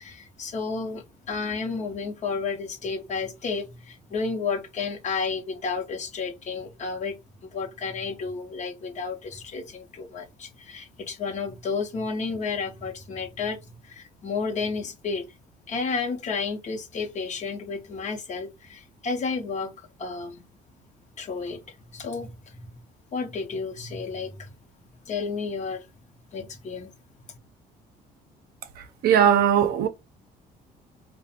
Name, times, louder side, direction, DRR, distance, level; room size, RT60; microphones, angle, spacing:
voice 1, 0.0-7.2 7.4-15.3 15.7-20.4 21.2-22.7 23.1-24.5 25.1-25.9 26.3-26.9 27.3-27.4, left 4 dB, 45° left, 0.8 m, -32 dB
voice 2, 29.0-29.9, right 9 dB, 65° right, 0.5 m, -19 dB
2.4 x 2.1 x 2.8 m
cardioid pair, 110°, 17 cm